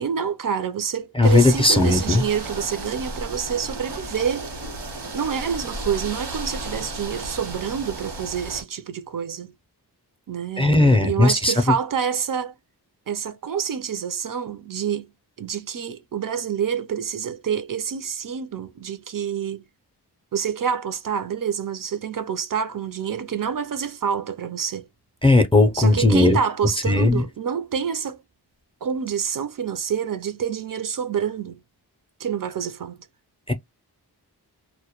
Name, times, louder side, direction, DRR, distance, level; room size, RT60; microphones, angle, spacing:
voice 1, 0.0-4.5 5.1-9.5 10.3-12.5 13.1-15.1 15.4-19.6 20.3-24.9 25.7-28.2 28.8-31.6 32.2-33.0, right 7 dB, 55° right, 0.5 m, -27 dB
voice 2, 1.1-2.2 10.6-11.5 25.2-26.4 26.8-27.2 33.5-33.6, left 2 dB, 15° left, 0.4 m, -17 dB
sound 1, 1.2-8.6, right 2 dB, 80° right, 1.0 m, -34 dB
2.1 x 2.1 x 2.8 m
wide cardioid pair, 105°, 39 cm